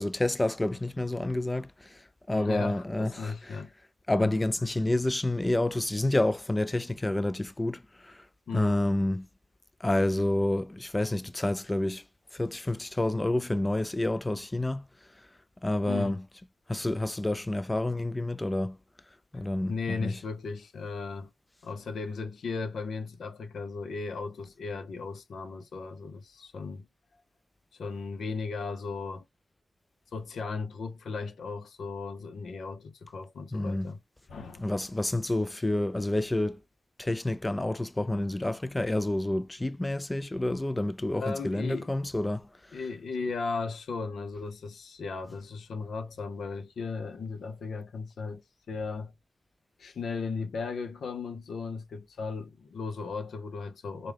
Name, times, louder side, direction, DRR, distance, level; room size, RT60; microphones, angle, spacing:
voice 1, 0.0-2.0 2.3-3.6 4.1-8.2 8.5-9.3 9.8-12.0 12.3-14.8 15.6-16.2 16.7-18.8 19.3-20.2 33.5-33.9 34.6-36.6 37.0-42.8, left 1 dB, 15° left, 0.3 m, -29 dB
voice 2, 2.3-3.7 4.2-4.3 8.5-8.8 15.9-16.2 19.7-21.3 21.6-26.9 27.7-29.2 30.1-34.0 34.3-34.7 41.1-41.9 42.7-49.1 49.8-54.1, left 4 dB, 80° left, 0.7 m, -36 dB
3.5 x 2.2 x 3.3 m
wide cardioid pair, 115°, 0 cm